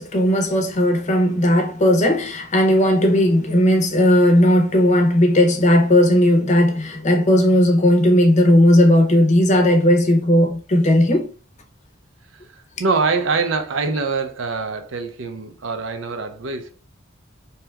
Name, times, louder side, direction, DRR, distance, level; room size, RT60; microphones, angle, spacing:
voice 1, 0.0-11.3, left 1 dB, 35° left, 0.6 m, -16 dB
voice 2, 12.8-16.7, right 4 dB, 75° right, 0.5 m, -24 dB
2.8 x 2.3 x 3.3 m
head